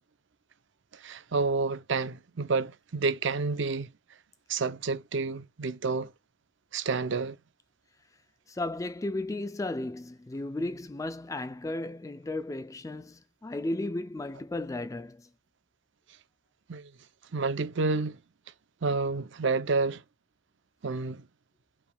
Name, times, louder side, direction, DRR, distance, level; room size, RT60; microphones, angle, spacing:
voice 1, 0.9-3.9 4.5-6.1 6.7-7.4 16.7-16.9 17.3-18.2 18.8-20.0 20.8-21.2, right 4 dB, 60° right, 0.6 m, -29 dB
voice 2, 8.5-15.3, left 2 dB, 15° left, 0.3 m, -34 dB
4.8 x 3.5 x 2.2 m
head